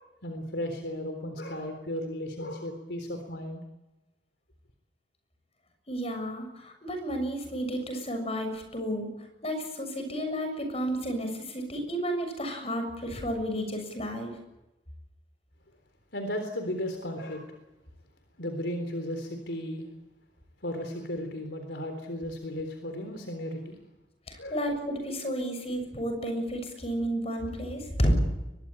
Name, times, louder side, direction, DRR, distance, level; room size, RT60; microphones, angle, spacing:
voice 1, 0.0-3.6 16.1-17.5 18.4-19.9 20.6-23.8 24.4-24.6, left 1 dB, 85° left, 6 dB, 3.8 m, -35 dB
voice 2, 5.9-9.1 9.4-14.3 24.3-28.2, equal, 35° left, 6 dB, 6.9 m, -31 dB
23.5 x 22.0 x 8.9 m, 1.0 s
head